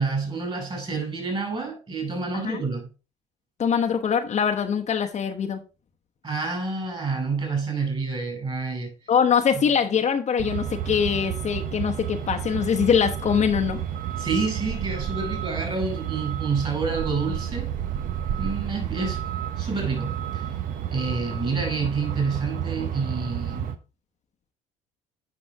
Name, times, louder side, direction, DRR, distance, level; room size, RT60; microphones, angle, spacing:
voice 1, 0.0-2.9 6.2-8.9 14.2-17.7 18.4-19.3 19.6-20.5 20.9-23.7, right 4 dB, 30° right, 5.2 m, -28 dB
voice 2, 3.6-5.6 9.1-13.8, left 7 dB, 40° left, 1.0 m, -23 dB
Truck, 10.4-23.8, right 10 dB, 55° right, 0.9 m, -31 dB
9.6 x 5.3 x 3.5 m
hypercardioid pair, 65°, 17 cm